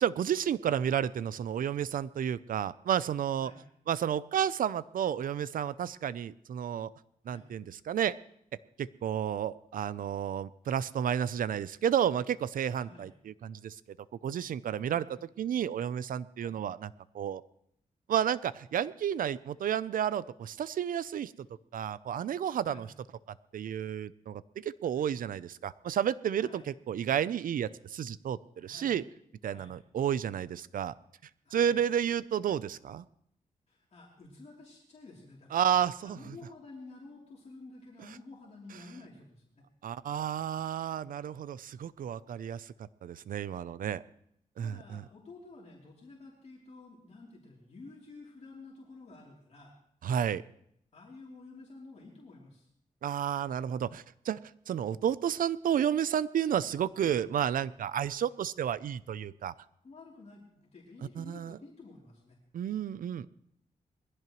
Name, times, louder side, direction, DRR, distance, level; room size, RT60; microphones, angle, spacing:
voice 1, 0.0-3.5 3.9-6.9 7.3-8.2 8.8-13.8 14.2-15.1 15.4-17.4 18.1-21.5 21.7-22.9 23.5-29.0 29.4-30.9 31.5-33.0 35.5-36.2 39.8-42.7 43.0-44.0 44.6-45.0 50.0-50.4 53.0-59.5 61.2-61.6 62.5-63.3, right 9 dB, 85° right, 17 dB, 0.5 m, -31 dB
voice 2, 12.7-13.1 14.9-15.1 16.4-16.5 22.6-22.9 26.4-26.7 28.6-29.0 29.4-29.8 31.4-31.8 33.7-35.6 36.0-39.6 44.6-49.7 50.9-52.7 59.8-62.4, left 3 dB, 50° left, -3 dB, 3.2 m, -51 dB
21.5 x 15.5 x 3.1 m, 0.71 s
wide cardioid pair, 125°, 14 cm